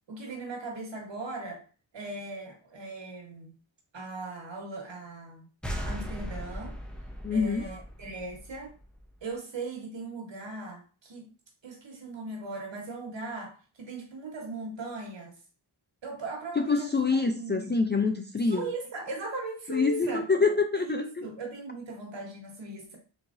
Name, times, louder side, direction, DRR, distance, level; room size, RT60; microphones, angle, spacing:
voice 1, 0.1-1.7 1.9-3.5 3.9-5.5 5.8-6.8 7.3-8.8 9.2-11.3 11.6-15.4 16.0-17.7 18.4-20.2 20.8-23.0, right 2 dB, 60° right, 0 dB, 1.4 m, -39 dB
sound 1, 5.6-9.1, equal, ahead, 0.7 m, -38 dB
voice 2, 7.2-7.7 16.6-18.7 19.7-21.3, left 4 dB, 25° left, 5 dB, 0.3 m, -26 dB
3.6 x 3.0 x 2.5 m, 0.36 s
cardioid pair, 60°, 49 cm